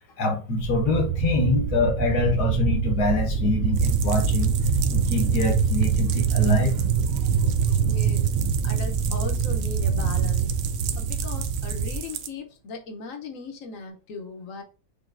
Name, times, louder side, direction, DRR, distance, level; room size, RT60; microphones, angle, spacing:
voice 1, 0.2-4.5 4.9-6.7, left 2 dB, 80° left, 4 dB, 1.6 m, -25 dB
sound 1, 0.6-12.0, right 6 dB, 60° right, 0.9 m, -24 dB
sound 2, 3.7-12.3, right 9 dB, 85° right, 0.5 m, -38 dB
voice 2, 7.8-8.3 8.6-10.5 10.9-14.6, left 3 dB, 60° left, 4 dB, 1.1 m, -38 dB
7.0 x 2.8 x 2.5 m, 0.35 s
omnidirectional pair, 1.7 m